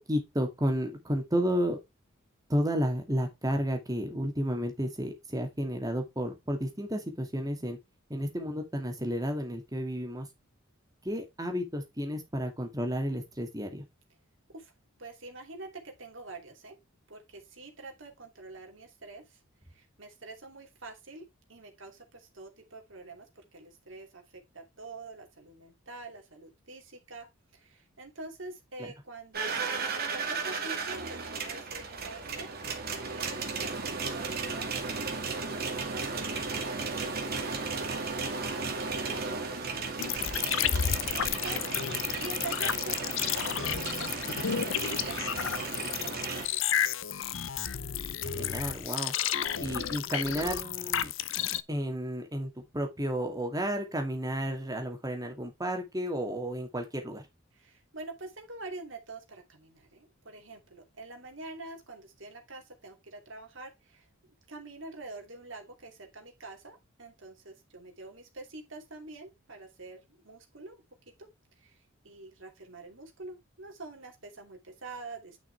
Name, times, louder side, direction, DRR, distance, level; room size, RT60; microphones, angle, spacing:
voice 1, 0.0-1.8 2.5-7.8 8.1-10.3 11.0-13.8 28.8-28.9 43.2-43.3 48.2-49.1 49.6-51.1 51.7-57.2, equal, 15° right, 2.2 m, -32 dB
voice 2, 15.0-16.8 17.1-19.4 19.7-27.3 27.5-32.5 32.8-34.7 35.0-37.7 38.2-43.5 44.0-46.9 49.5-49.8 57.6-64.1 64.5-70.8 71.2-71.3 71.6-71.8 72.0-75.4, right 2 dB, 60° right, 2.7 m, -46 dB
sound 1, 29.3-46.5, right 4 dB, 45° right, 2.1 m, -34 dB
sound 2, 40.0-51.6, left 9 dB, 65° left, 0.7 m, -32 dB
9.7 x 5.8 x 3.4 m
head